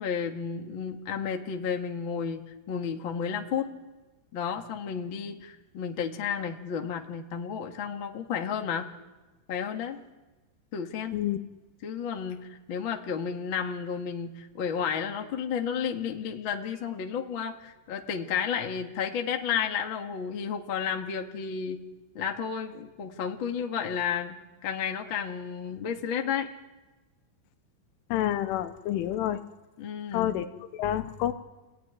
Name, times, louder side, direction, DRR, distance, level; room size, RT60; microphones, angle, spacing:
voice 1, 0.0-3.7 4.3-8.9 9.5-10.0 10.7-11.1 11.8-21.8 22.1-26.5 29.8-30.3, left 7 dB, 55° left, 3 dB, 1.4 m, -32 dB
voice 2, 28.1-29.4 30.1-31.3, left 12 dB, 85° left, 9 dB, 3.6 m, -28 dB
28.0 x 18.0 x 9.8 m, 1.2 s
omnidirectional pair, 5.6 m